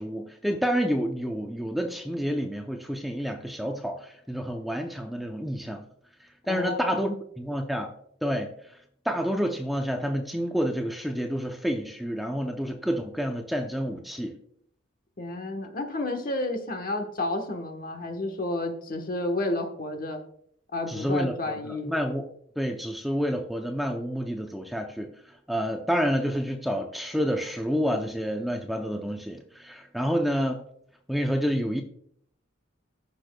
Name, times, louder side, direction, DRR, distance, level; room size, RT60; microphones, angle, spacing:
voice 1, 0.0-5.8 6.5-7.1 7.4-7.9 8.2-8.5 9.1-14.4 20.9-22.2 22.6-25.1 25.5-30.6 31.1-31.8, equal, ahead, 3 dB, 0.6 m, -29 dB
voice 2, 6.5-7.0 15.2-20.2 20.7-21.9, left 2 dB, 45° left, 4 dB, 1.2 m, -31 dB
15.0 x 6.1 x 2.2 m, 0.68 s
head